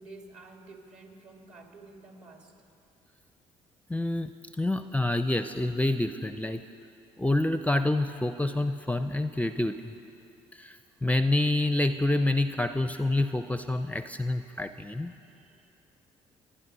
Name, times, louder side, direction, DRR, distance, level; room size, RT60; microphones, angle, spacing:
voice 1, 0.0-2.6 15.0-15.7, right 3 dB, 50° right, 2 dB, 2.7 m, -51 dB
voice 2, 3.9-4.3 4.6-6.6 7.2-9.9 10.5-15.1, left 2 dB, 10° left, 10 dB, 0.5 m, -27 dB
24.5 x 10.0 x 5.4 m, 2.7 s
hypercardioid pair, 55°, 15 cm